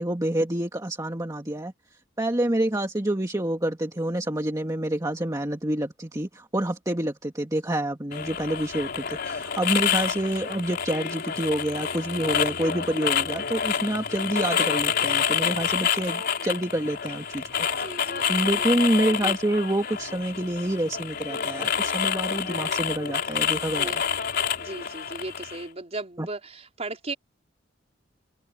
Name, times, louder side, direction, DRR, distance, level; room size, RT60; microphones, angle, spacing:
voice 1, 0.0-1.7 2.2-17.9 18.3-24.0 26.2-26.3, right 1 dB, 20° right, 1.8 m, -27 dB
sound 1, 8.1-25.6, left 7 dB, 55° left, 4.3 m, -28 dB
voice 2, 17.7-18.7 19.2-19.6 22.4-22.9 23.8-27.1, right 2 dB, 35° right, 4.6 m, -38 dB
head